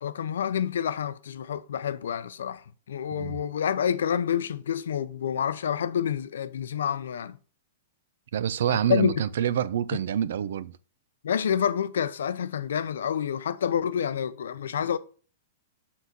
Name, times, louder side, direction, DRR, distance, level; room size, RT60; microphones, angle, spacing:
voice 1, 0.0-7.4 8.7-9.2 9.9-10.0 11.2-15.0, left 8 dB, 85° left, 0.6 m, -28 dB
voice 2, 8.3-10.7, right 9 dB, 75° right, 0.5 m, -27 dB
5.8 x 4.1 x 6.0 m
hypercardioid pair, 140°, 0 cm